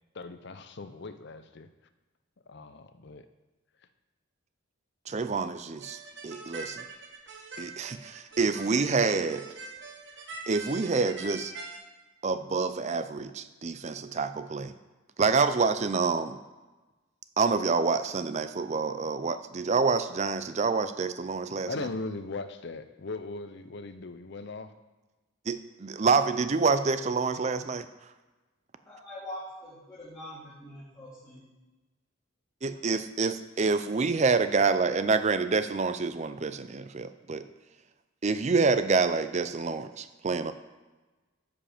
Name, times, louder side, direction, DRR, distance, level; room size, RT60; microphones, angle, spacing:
voice 1, 0.1-1.7 2.5-3.3 21.7-24.7, left 3 dB, 55° left, 10 dB, 0.6 m, -39 dB
voice 2, 5.1-6.8 7.6-9.4 10.5-11.5 12.2-14.7 15.2-16.4 17.4-21.9 25.5-27.9 32.6-37.4 38.2-40.5, right 4 dB, 35° right, 11 dB, 0.5 m, -27 dB
sound 1, 5.8-11.8, right 3 dB, 60° right, 1.3 m, -43 dB
voice 3, 28.9-31.4, left 1 dB, 15° left, -11 dB, 2.7 m, -43 dB
12.5 x 5.2 x 5.0 m, 1.2 s
head